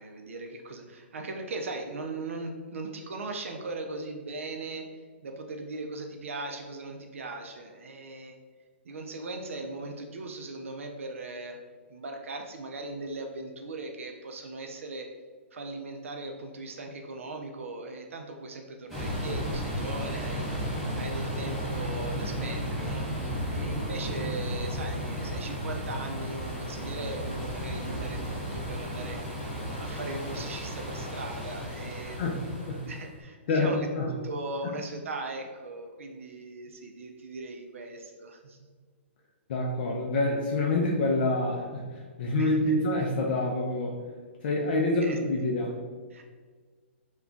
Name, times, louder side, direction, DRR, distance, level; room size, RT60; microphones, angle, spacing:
voice 1, 0.0-8.4 8.8-11.6 11.9-15.1 15.5-20.5 21.0-23.1 23.5-29.2 29.8-32.4 32.9-38.6 42.4-42.7 45.0-45.2 46.1-46.2, right 2 dB, 80° right, 3 dB, 0.4 m, -39 dB
sound 1, 18.9-33.1, equal, ahead, 0.6 m, -34 dB
voice 2, 32.0-32.4 32.7-32.8 33.5-33.7 34.0-34.1 39.5-44.0 44.4-45.8, left 2 dB, 45° left, -2 dB, 0.4 m, -27 dB
2.3 x 2.2 x 3.7 m, 1.5 s
hypercardioid pair, 155°, 7 cm